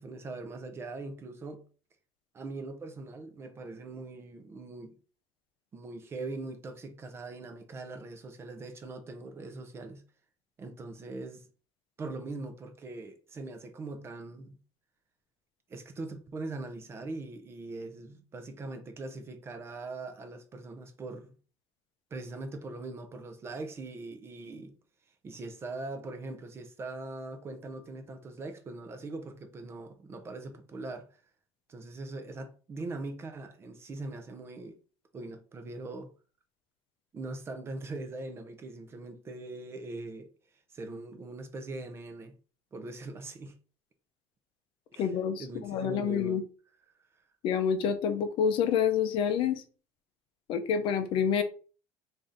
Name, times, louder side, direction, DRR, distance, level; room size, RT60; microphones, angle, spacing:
voice 1, 0.0-1.6 2.3-5.0 5.7-10.0 10.6-11.5 12.0-14.6 15.7-21.4 22.1-24.8 25.2-31.2 31.7-34.8 35.1-36.1 37.1-40.3 40.7-42.4 42.7-43.5 44.9-45.1 45.4-46.4, right 2 dB, 20° right, 0.5 m, -41 dB
voice 2, 45.0-46.4 47.4-49.6 50.5-51.4, left 7 dB, 50° left, 0.5 m, -28 dB
3.4 x 2.6 x 3.8 m
cardioid pair, 165°, 11 cm